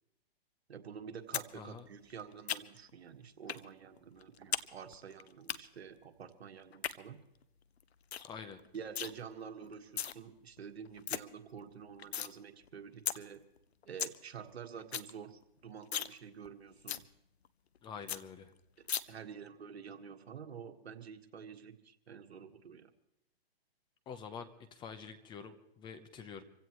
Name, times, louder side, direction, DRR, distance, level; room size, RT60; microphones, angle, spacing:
voice 1, 0.7-7.2 8.7-13.4 13.9-17.1 18.8-22.9, right 7 dB, 80° right, 6 dB, 1.7 m, -48 dB
sound 1, 1.3-1.5 1.8-2.9 3.5-3.6 4.0-4.7 4.9-5.6 6.6-6.9 7.4-7.5 7.8-7.9 8.1-8.3 8.6-9.1 9.7-10.1 10.6-10.7 10.8-11.2 11.6-12.3 12.7-12.8 13.1-13.2 13.6-13.7 13.8-14.2 14.5-14.6 14.8-15.1 15.4-15.5 15.8-16.1 16.4-16.5 16.9-17.0 17.4-17.5 17.8-17.9 18.1-18.2 18.9-19.0, left 9 dB, 80° left, 0.9 m, -36 dB
voice 2, 8.2-8.6 17.8-18.5 24.1-26.4, left 6 dB, 15° left, 9 dB, 0.8 m, -47 dB
26.5 x 16.0 x 3.1 m, 0.87 s
hypercardioid pair, 140°, 31 cm